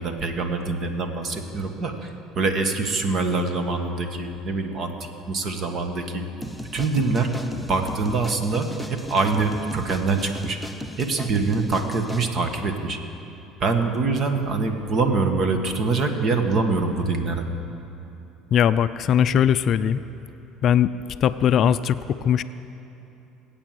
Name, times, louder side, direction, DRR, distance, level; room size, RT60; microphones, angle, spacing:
voice 1, 0.0-6.2 6.7-7.4 7.7-10.6 11.0-13.0 13.6-17.4, right 3 dB, 40° right, 6 dB, 1.6 m, -24 dB
sound 1, 6.4-12.3, equal, 5° right, 0.7 m, -37 dB
voice 2, 18.5-20.0 20.6-20.9 21.2-22.4, left 9 dB, 45° left, 13 dB, 0.4 m, -20 dB
20.0 x 9.0 x 7.8 m, 2.9 s
cardioid pair, 120°, 0 cm